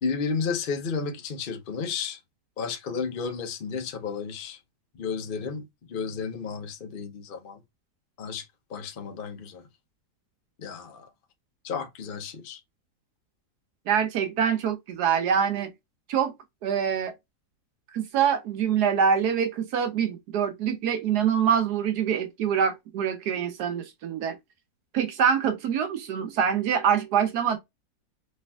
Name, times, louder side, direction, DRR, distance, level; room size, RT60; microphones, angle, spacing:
voice 1, 0.0-2.2 2.6-4.6 4.9-7.6 8.2-8.4 8.7-9.6 10.6-11.1 11.6-12.6, left 5 dB, 45° left, 0.7 m, -32 dB
voice 2, 13.9-15.7 16.1-16.3 16.6-17.1 17.9-24.4 24.9-27.6, right 7 dB, 85° right, 1.3 m, -25 dB
5.8 x 3.1 x 2.3 m
omnidirectional pair, 1.7 m